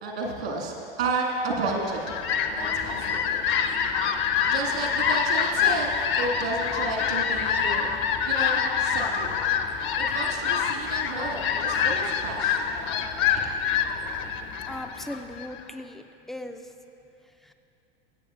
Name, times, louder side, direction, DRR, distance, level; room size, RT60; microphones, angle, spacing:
voice 1, 0.0-2.2 2.5-3.2 4.5-7.9 8.2-9.3 10.0-12.7, right 3 dB, 80° right, 0 dB, 2.0 m, -31 dB
Fowl, 1.7-15.6, left 7 dB, 40° left, 0.7 m, -26 dB
voice 2, 14.7-16.7 17.4-17.5, left 1 dB, ahead, 6 dB, 0.4 m, -38 dB
21.5 x 7.7 x 2.5 m, 2.8 s
hypercardioid pair, 90°, 30 cm